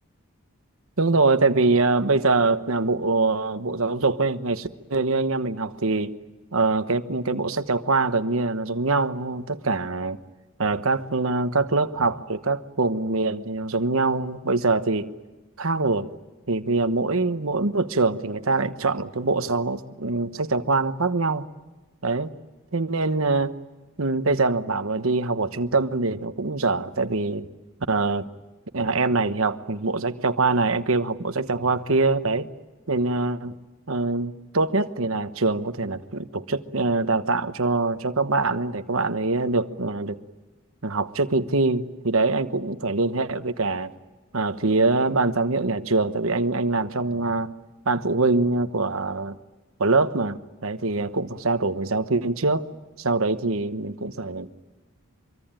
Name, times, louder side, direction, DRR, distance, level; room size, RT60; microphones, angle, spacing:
voice 1, 1.0-6.1 6.5-10.2 10.6-15.1 15.6-16.1 16.5-21.4 22.0-22.3 22.7-23.6 24.0-27.5 27.9-28.3 28.7-32.5 32.9-33.5 33.9-40.2 40.8-43.9 44.3-47.5 47.8-49.3 49.8-52.6 53.0-54.5, right 3 dB, 70° right, 10 dB, 1.2 m, -24 dB
25.0 x 23.5 x 9.0 m, 1.2 s
head